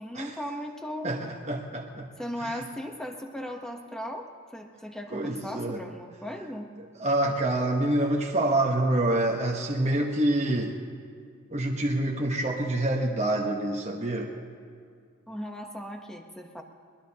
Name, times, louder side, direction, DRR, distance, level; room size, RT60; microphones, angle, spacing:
voice 1, 0.0-1.1 2.2-6.7 15.3-16.6, equal, 5° left, 3 dB, 0.9 m, -37 dB
voice 2, 1.0-2.1 2.4-2.6 5.1-5.8 7.0-10.7 11.5-14.3, right 1 dB, 30° right, 0 dB, 1.1 m, -26 dB
21.5 x 20.0 x 2.9 m, 2.2 s
head